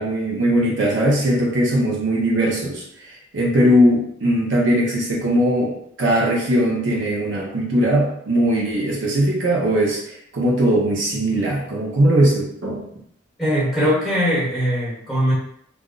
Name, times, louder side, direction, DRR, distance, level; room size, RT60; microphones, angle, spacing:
voice 1, 0.0-12.9, right 1 dB, 65° right, -3 dB, 0.8 m, -20 dB
voice 2, 13.4-15.3, equal, ahead, -7 dB, 1.1 m, -20 dB
2.5 x 2.1 x 3.7 m, 0.70 s
head